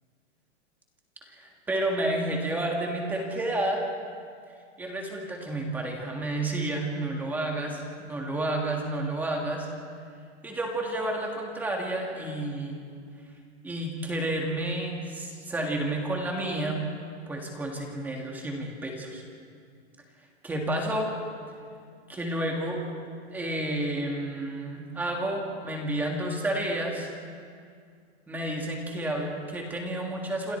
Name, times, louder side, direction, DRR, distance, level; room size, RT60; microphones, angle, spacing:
voice 1, 1.3-3.8 4.8-9.7 10.4-12.8 13.6-16.8 17.3-19.2 20.4-21.1 22.1-22.8 23.3-27.1 28.3-30.6, right 1 dB, 5° right, 0 dB, 1.8 m, -30 dB
27.5 x 25.5 x 4.5 m, 2.2 s
hypercardioid pair, 175°, 35 cm